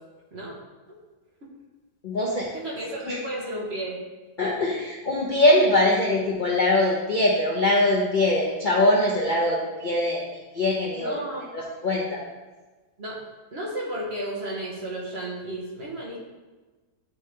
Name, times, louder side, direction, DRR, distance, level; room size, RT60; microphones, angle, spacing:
voice 1, 2.0-2.5 3.1-3.2 4.4-10.2 10.5-11.2 11.5-12.2, left 1 dB, 45° left, -4 dB, 0.6 m, -22 dB
voice 2, 2.5-4.0 10.9-11.5 13.0-13.2 13.5-16.2, right 1 dB, 40° right, -3 dB, 1.1 m, -33 dB
9.7 x 3.6 x 3.2 m, 1.3 s
omnidirectional pair, 1.9 m